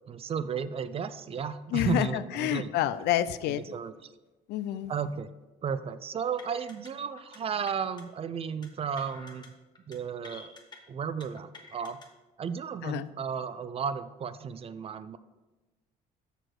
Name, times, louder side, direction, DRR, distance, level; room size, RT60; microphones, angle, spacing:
voice 1, 0.1-2.7 3.5-4.1 4.9-5.3 5.6-9.5 9.9-10.5 10.9-12.0 12.4-15.2, right 6 dB, 35° right, 14 dB, 0.4 m, -34 dB
voice 2, 1.7-3.6 4.5-4.9 12.8-13.1, left 12 dB, 80° left, 14 dB, 0.4 m, -28 dB
sound 1, 6.4-6.9 7.2-7.4 7.7-8.0 8.6-9.5 9.7-10.0 10.2-10.8 11.2-12.1, left 3 dB, 25° left, 1.2 m, -49 dB
6.6 x 6.1 x 4.7 m, 1.2 s
cardioid pair, 110°, 17 cm